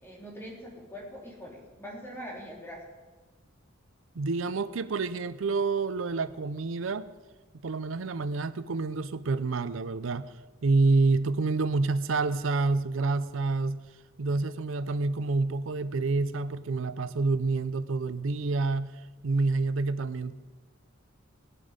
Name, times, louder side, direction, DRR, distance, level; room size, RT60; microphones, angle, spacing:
voice 1, 0.0-2.8, equal, 10° left, -3 dB, 3.6 m, -43 dB
voice 2, 4.2-7.1 7.6-10.3 10.6-13.8 14.2-18.9 19.2-20.3, right 3 dB, 85° right, 14 dB, 0.6 m, -28 dB
17.5 x 11.0 x 5.1 m, 1.3 s
head